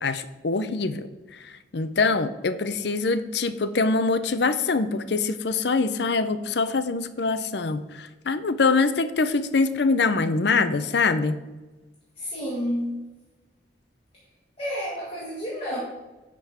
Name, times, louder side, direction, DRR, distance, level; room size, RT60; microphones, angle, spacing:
voice 1, 0.0-1.1 1.7-11.3, left 4 dB, 65° left, 12 dB, 0.6 m, -24 dB
voice 2, 12.2-13.1 14.6-15.8, equal, 30° left, -6 dB, 1.9 m, -30 dB
10.0 x 3.8 x 7.2 m, 1.2 s
head